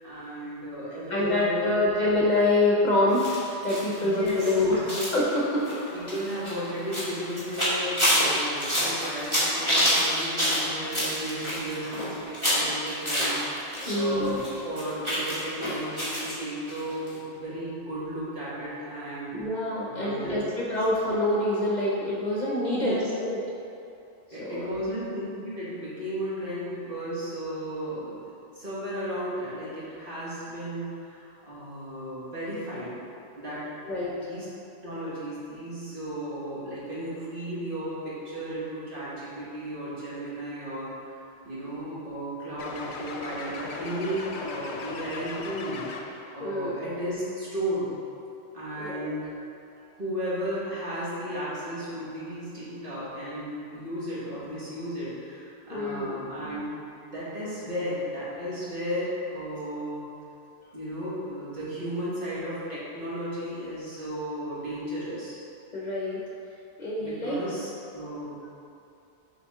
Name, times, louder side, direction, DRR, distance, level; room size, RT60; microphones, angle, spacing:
voice 1, 0.0-1.8 4.0-5.0 5.9-19.3 19.8-20.5 22.7-23.0 24.3-32.9 33.4-33.6 34.2-34.5 34.8-40.9 41.4-45.8 46.3-47.9 48.5-49.3 49.9-56.6 57.0-60.0 60.7-65.4 67.0-68.3, equal, 50° right, -10 dB, 1.8 m, -34 dB
voice 2, 1.1-3.4 3.6-5.6 13.9-14.4 19.3-23.4 24.4-24.6 33.8-34.1 46.4-46.8 48.8-49.1 55.7-56.3 65.7-66.2 66.8-67.4, left 2 dB, 45° left, -6 dB, 0.9 m, -26 dB
sound 1, 3.1-14.0 14.2-16.3 16.7-16.8 17.1-17.2, equal, 25° right, 1.6 m, -28 dB
sound 2, 42.6-46.4, left 3 dB, 70° left, 0.8 m, -37 dB
6.9 x 4.1 x 3.6 m, 2.7 s
omnidirectional pair, 1.2 m